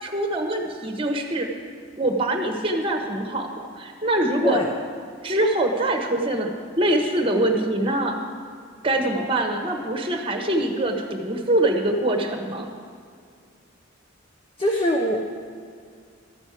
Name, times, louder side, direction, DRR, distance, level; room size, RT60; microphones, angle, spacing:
voice 1, 0.0-1.5 2.0-4.6 5.2-8.1 8.8-12.7, right 1 dB, 25° right, 3 dB, 1.2 m, -24 dB
voice 2, 14.6-15.3, left 1 dB, 25° left, 0 dB, 0.8 m, -22 dB
13.0 x 6.3 x 8.3 m, 2.2 s
head